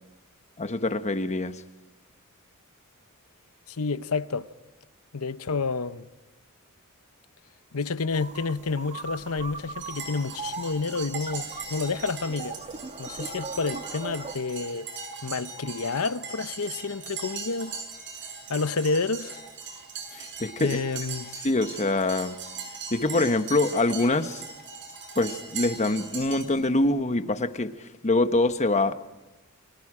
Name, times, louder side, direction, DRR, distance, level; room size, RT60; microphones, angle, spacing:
voice 1, 0.6-1.6 20.1-20.8 21.4-22.4 22.9-24.5 25.2-28.9, left 2 dB, 30° left, 1.1 m, -25 dB
voice 2, 3.7-4.5 5.1-6.1 7.7-12.6 13.0-14.9 15.2-17.8 18.5-19.4 20.6-21.3, left 4 dB, 75° left, 0.9 m, -29 dB
sound 1, 8.1-14.4, right 4 dB, 30° right, 1.3 m, -39 dB
sound 2, 9.8-26.5, right 5 dB, 55° right, 7.2 m, -39 dB
30.0 x 23.5 x 5.0 m
head